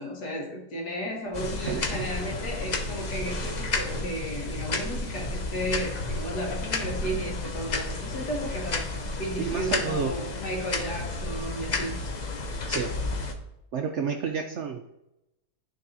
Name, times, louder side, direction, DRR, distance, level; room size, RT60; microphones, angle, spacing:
voice 1, 0.0-8.9 9.2-12.0, equal, 80° left, 0 dB, 2.0 m, -34 dB
sound 1, 1.3-13.3, left 3 dB, 65° left, 0.4 m, -32 dB
voice 2, 1.6-2.1 9.4-10.2 12.7-13.0 13.7-14.8, right 6 dB, 70° right, 3 dB, 0.6 m, -30 dB
11.5 x 4.0 x 2.6 m, 0.87 s
omnidirectional pair, 1.7 m